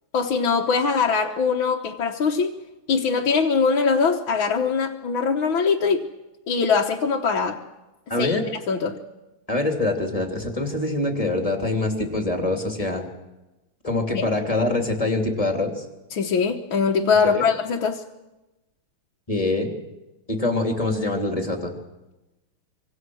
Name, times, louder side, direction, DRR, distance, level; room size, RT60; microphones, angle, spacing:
voice 1, 0.1-2.5 2.9-6.1 6.5-7.6 8.2-8.4 8.7-9.0 14.2-14.3 16.1-18.0, left 5 dB, 75° left, -1 dB, 2.0 m, -22 dB
voice 2, 8.1-8.4 9.5-13.1 13.8-15.8 17.2-17.4 19.3-19.7 20.3-21.7, left 2 dB, 15° left, 3 dB, 3.0 m, -24 dB
25.0 x 25.0 x 6.3 m, 1.0 s
omnidirectional pair, 2.3 m